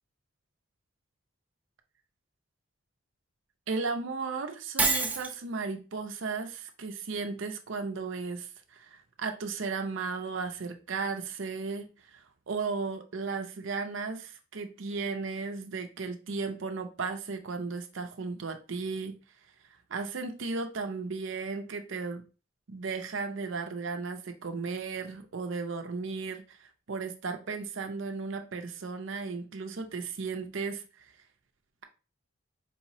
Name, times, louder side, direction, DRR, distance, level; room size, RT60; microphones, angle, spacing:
voice 1, 3.7-19.1 19.9-22.2 22.7-31.1, right 4 dB, 70° right, 0.6 m, -35 dB
Shatter, 4.8-5.3, right 3 dB, 5° right, 0.4 m, -26 dB
4.7 x 3.0 x 2.6 m
head